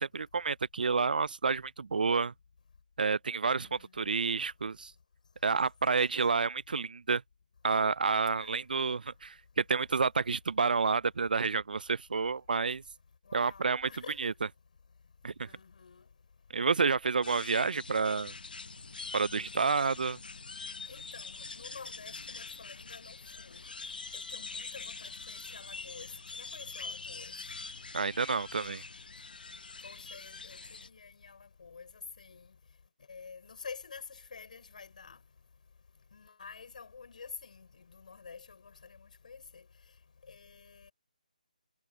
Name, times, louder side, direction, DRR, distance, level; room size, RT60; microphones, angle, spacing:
voice 1, 0.0-2.3 3.0-4.9 5.4-7.2 7.6-12.8 13.3-13.9 14.2-14.3 15.2-15.5 16.5-18.3 19.1-20.2 27.9-28.8, right 5 dB, 80° right, 0.4 m, -29 dB
voice 2, 3.5-3.9 8.4-8.5 13.3-14.3 15.4-16.0 19.8-20.0 20.9-23.2 23.4-23.6 24.3-27.3 29.8-30.6 30.8-31.9 32.2-32.5 33.1-35.2 36.1-39.6 40.3-40.9, left 5 dB, 60° left, 5.2 m, -49 dB
sound 1, 17.2-30.9, left 4 dB, 85° left, 0.8 m, -44 dB
hypercardioid pair, 165°, 5 cm